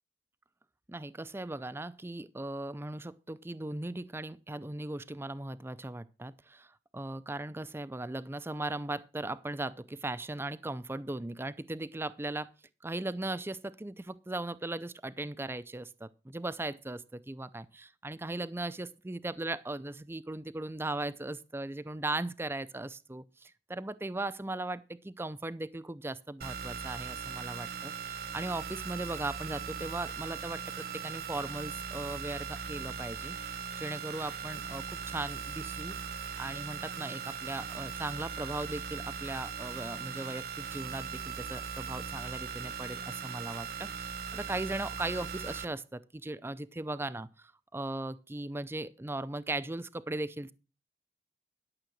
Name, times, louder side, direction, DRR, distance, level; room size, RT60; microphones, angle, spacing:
voice 1, 0.9-12.5 12.8-33.4 33.8-36.0 36.4-50.5, right 2 dB, 15° right, 0.5 m, -38 dB
sound 1, 26.4-45.7, right 6 dB, 60° right, 1.0 m, -39 dB
12.0 x 6.9 x 6.3 m
head